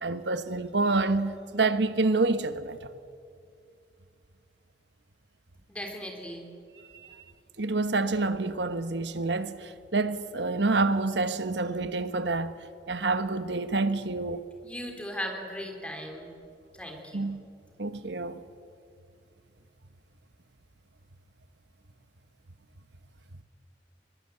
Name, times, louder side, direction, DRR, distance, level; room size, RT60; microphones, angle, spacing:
voice 1, 0.0-2.8 6.9-7.2 7.6-12.5 12.9-14.4 17.1-17.4 17.8-18.4, right 3 dB, 85° right, 1.2 m, -28 dB
voice 2, 5.7-6.5 14.6-16.3 16.8-17.3, equal, 5° left, 3.5 m, -37 dB
22.5 x 22.0 x 8.0 m
head